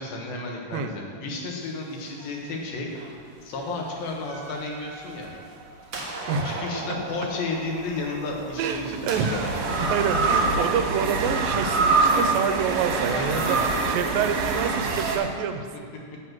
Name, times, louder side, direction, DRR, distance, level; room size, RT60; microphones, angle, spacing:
voice 1, 0.0-2.9 3.4-5.3 6.4-9.5 13.1-13.7, left 3 dB, 85° left, 0 dB, 3.1 m, -32 dB
sound 1, 1.6-2.5 2.9-4.5 5.1-5.5 5.8-8.8 9.1-10.7, right 2 dB, 50° right, 1.9 m, -36 dB
sound 2, 4.3-5.8 7.6-15.2, right 3 dB, 70° right, 2.6 m, -25 dB
voice 2, 6.3-6.7 8.6-9.5 9.9-13.6 13.9-15.7, right 7 dB, 85° right, 7 dB, 2.4 m, -27 dB
8.7 x 7.6 x 6.0 m, 2.1 s
omnidirectional pair, 4.0 m